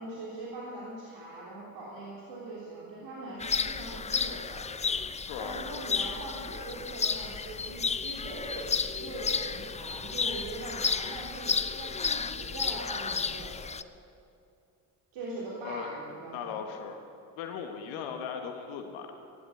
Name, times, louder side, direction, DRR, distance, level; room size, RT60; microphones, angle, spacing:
voice 1, 0.0-4.6 5.4-13.5 15.1-16.6, right 2 dB, 65° right, -5 dB, 3.4 m, -41 dB
sound 1, 3.4-13.8, left 5 dB, 15° left, 0.5 m, -32 dB
voice 2, 5.3-5.6 15.6-15.9 16.3-17.0 17.4-19.1, left 7 dB, 75° left, 5 dB, 1.5 m, -38 dB
14.5 x 11.5 x 8.2 m, 2.4 s
hypercardioid pair, 55°, 47 cm